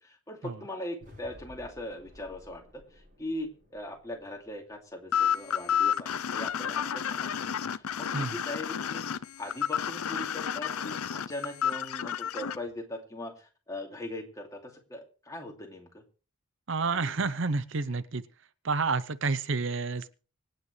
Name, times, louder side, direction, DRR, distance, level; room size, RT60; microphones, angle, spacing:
voice 1, 0.0-9.0 9.4-16.0 16.8-17.1, left 1 dB, 15° left, 1 dB, 2.5 m, -40 dB
sound 1, 1.0-5.2, left 1 dB, 40° right, 6.7 m, -55 dB
sound 2, 5.1-12.6, left 8 dB, 90° left, 0.6 m, -30 dB
voice 2, 16.7-18.2 18.6-20.1, right 4 dB, 60° right, 14 dB, 0.7 m, -29 dB
25.0 x 9.1 x 3.2 m, 0.38 s
head